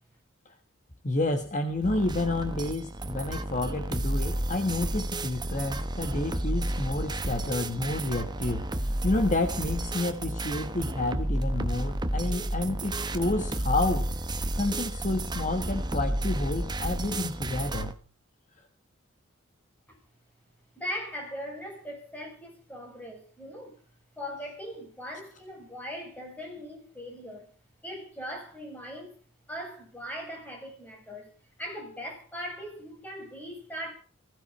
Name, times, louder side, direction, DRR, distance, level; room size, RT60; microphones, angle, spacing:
voice 1, 1.0-14.1 14.5-18.0, left 2 dB, 40° left, 1.5 m, -30 dB
sound 1, 1.8-17.9, right 1 dB, 20° right, 1.1 m, -31 dB
voice 2, 20.7-23.8 24.2-27.5 27.8-29.2 29.5-31.3 31.6-33.9, equal, 10° left, 7.3 m, -39 dB
20.0 x 16.0 x 4.3 m
head